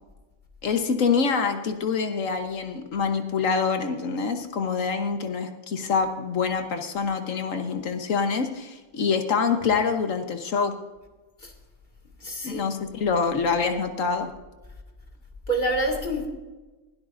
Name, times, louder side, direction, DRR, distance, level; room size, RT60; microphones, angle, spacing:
voice 1, 0.6-10.7 12.4-14.3, left 5 dB, 75° left, 1.4 m, -25 dB
voice 2, 12.2-12.8 15.5-16.3, right 1 dB, 35° left, 2.1 m, -27 dB
21.0 x 12.5 x 2.6 m
omnidirectional pair, 1.4 m